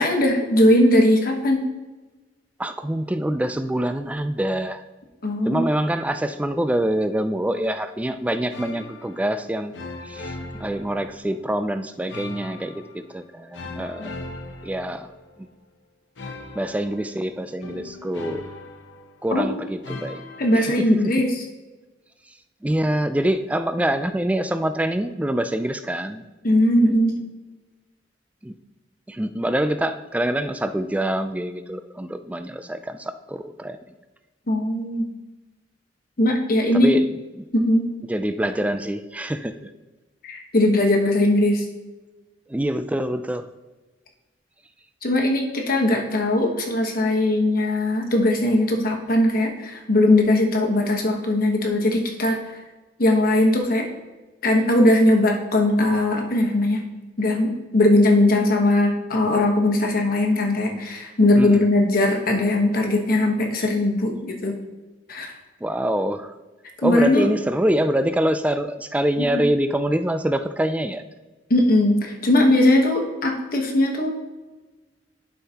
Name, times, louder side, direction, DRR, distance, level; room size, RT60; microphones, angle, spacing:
voice 1, 0.0-1.6 5.2-5.6 14.0-14.1 19.3-19.4 20.4-21.3 26.4-27.2 34.5-35.1 36.2-36.9 37.5-37.9 40.2-41.6 45.0-52.4 53.0-53.9 54.4-56.8 57.2-64.6 65.1-65.3 66.8-67.3 69.3-69.4 71.5-74.1, left 1 dB, 50° left, 2 dB, 1.2 m, -19 dB
voice 2, 2.6-4.8 5.5-9.7 10.0-14.2 14.6-15.1 16.2-18.4 19.2-20.2 20.5-21.1 22.6-26.2 28.4-28.5 29.1-33.8 36.7-37.1 37.4-37.5 38.1-39.7 42.5-43.5 61.4-61.7 65.6-66.3 66.8-71.0, right 1 dB, 10° right, 10 dB, 0.3 m, -25 dB
sound 1, 8.5-9.4 9.7-11.4 12.1-13.1 13.5-15.5 16.2-19.4 19.8-20.8, left 2 dB, 85° left, 0.9 m, -38 dB
11.5 x 5.6 x 2.9 m, 1.2 s
head